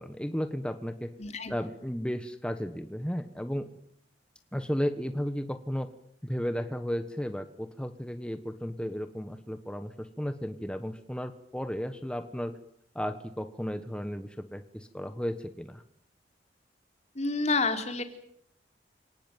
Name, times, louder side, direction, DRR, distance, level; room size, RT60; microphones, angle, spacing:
voice 1, 0.0-1.1 1.5-3.7 4.5-5.9 6.2-12.6 12.9-15.8, equal, 5° left, 9 dB, 1.3 m, -34 dB
voice 2, 1.2-1.5 17.2-18.0, left 3 dB, 40° left, 7 dB, 3.7 m, -28 dB
28.0 x 19.0 x 9.3 m, 0.71 s
head